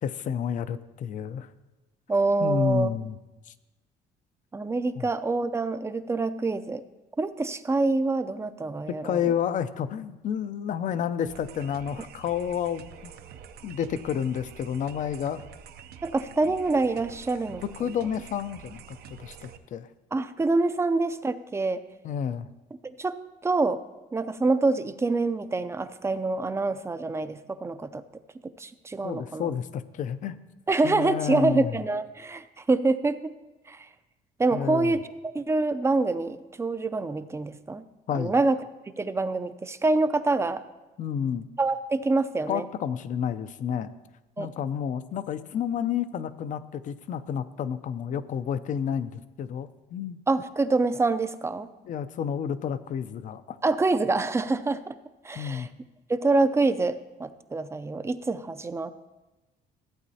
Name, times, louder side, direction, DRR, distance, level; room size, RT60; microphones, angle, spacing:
voice 1, 0.0-1.5 2.4-3.2 3.5-3.6 5.0-5.1 8.9-13.1 13.6-15.4 17.8-19.9 22.0-22.5 29.0-30.4 30.8-31.9 34.5-35.0 38.1-38.3 41.0-41.5 42.5-43.9 44.4-50.2 51.8-53.6 55.3-55.7, left 8 dB, 50° left, 14 dB, 0.5 m, -30 dB
voice 2, 2.1-2.9 4.5-6.8 7.2-9.3 16.0-17.6 20.1-21.8 23.0-23.8 24.1-28.0 28.6-29.5 30.7-33.3 33.7-33.9 34.4-35.0 35.3-37.8 38.1-38.6 39.0-40.6 41.6-42.7 44.4-44.5 50.3-51.7 53.6-54.9 55.2-55.7 56.1-58.9, right 3 dB, 15° right, 12 dB, 0.4 m, -26 dB
sound 1, 11.2-19.6, right 8 dB, 70° right, 0.6 m, -47 dB
14.5 x 8.3 x 2.8 m, 1.1 s
cardioid pair, 110°, 17 cm